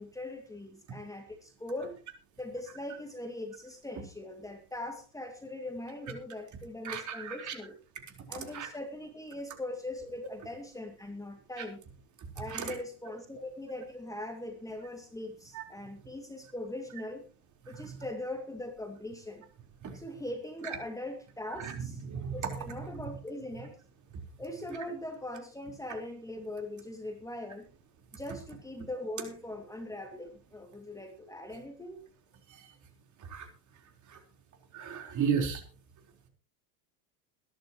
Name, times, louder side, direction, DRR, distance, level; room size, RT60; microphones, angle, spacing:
voice 1, 0.0-2.0 2.4-7.8 8.3-11.8 12.4-17.2 17.7-19.4 19.9-22.0 22.3-23.7 24.4-27.7 28.1-32.0, left 1 dB, 5° left, 4 dB, 2.3 m, -41 dB
voice 2, 6.8-7.5 8.5-8.7 12.5-12.7 15.5-15.6 19.8-19.9 21.6-21.7 22.1-22.3 33.3-33.5 34.7-35.6, right 7 dB, 35° right, 3 dB, 4.3 m, -33 dB
22.0 x 11.0 x 3.1 m, 0.34 s
hypercardioid pair, 100°, 48 cm